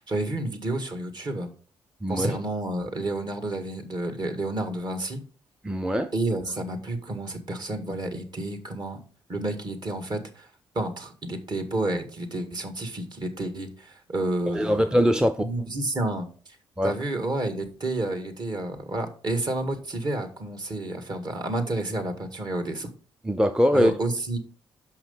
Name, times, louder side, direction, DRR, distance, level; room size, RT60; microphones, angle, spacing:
voice 1, 0.0-1.5 2.1-5.2 6.1-9.0 9.3-10.5 10.8-15.0 15.4-16.3 16.8-22.9 23.7-24.4, right 2 dB, 45° right, 1.9 m, -30 dB
voice 2, 5.6-6.1 14.5-15.5 16.8-16.9 23.2-23.9, equal, 5° right, 0.6 m, -22 dB
5.9 x 5.7 x 5.6 m
hypercardioid pair, 50°, 10 cm